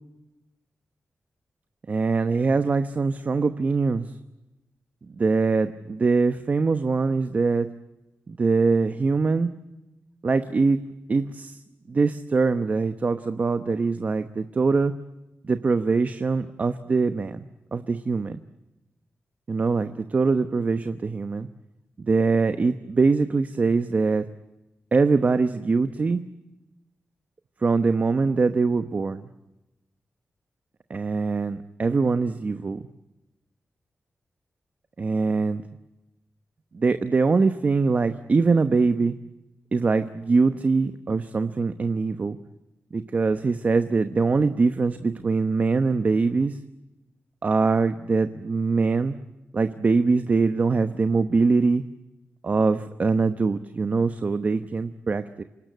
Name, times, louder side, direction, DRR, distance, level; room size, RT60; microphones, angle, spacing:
voice 1, 1.9-4.1 5.1-7.7 8.3-9.5 10.2-10.8 11.1-11.6 11.9-14.9 15.4-17.5 17.7-18.4 19.5-21.5 22.0-24.3 24.9-26.2 27.6-29.2 30.9-32.8 35.0-35.6 36.7-39.1 39.7-42.4 42.9-46.6 47.4-49.2 49.5-51.8 52.4-55.4, right 4 dB, 40° right, 10 dB, 1.0 m, -23 dB
28.0 x 19.0 x 9.3 m, 0.99 s
wide cardioid pair, 145°, 4 cm